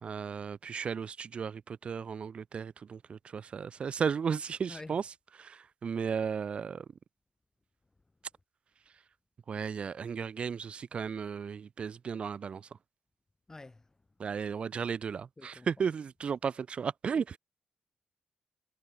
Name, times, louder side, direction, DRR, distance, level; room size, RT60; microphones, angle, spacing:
voice 1, 0.0-5.0 5.4-6.8 9.5-12.7 14.2-17.4, right 6 dB, 55° right, 1.1 m, -35 dB
voice 2, 4.7-5.0 13.5-13.9 15.4-15.7, left 2 dB, 25° left, 2.7 m, -47 dB
cardioid pair, 70°, 2 cm